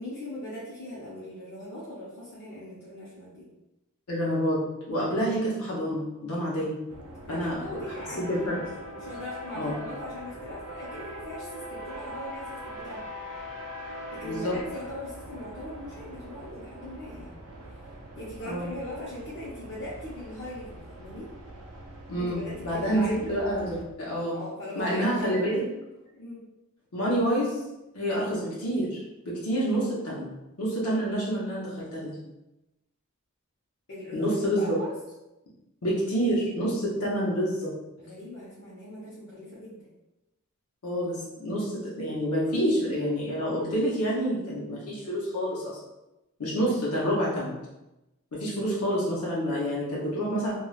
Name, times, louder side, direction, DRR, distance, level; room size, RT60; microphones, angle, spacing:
voice 1, 0.0-3.5 7.3-8.5 8.9-13.1 14.1-17.3 18.1-21.3 22.2-23.3 24.3-25.6 26.2-26.4 33.9-34.9 38.0-39.8, left 1 dB, 55° left, -9 dB, 0.8 m, -40 dB
voice 2, 4.1-4.6 4.9-6.7 7.3-7.8 8.2-8.6 9.5-9.7 14.2-14.5 18.5-18.7 22.1-24.4 24.8-25.6 26.9-27.7 27.9-30.3 30.6-32.2 34.1-34.8 35.8-37.7 40.8-45.8 46.4-47.5 48.3-50.5, equal, 85° left, -6 dB, 0.8 m, -28 dB
sound 1, 6.9-23.8, equal, 75° right, 0.5 m, -42 dB
3.1 x 2.3 x 2.3 m, 0.96 s
head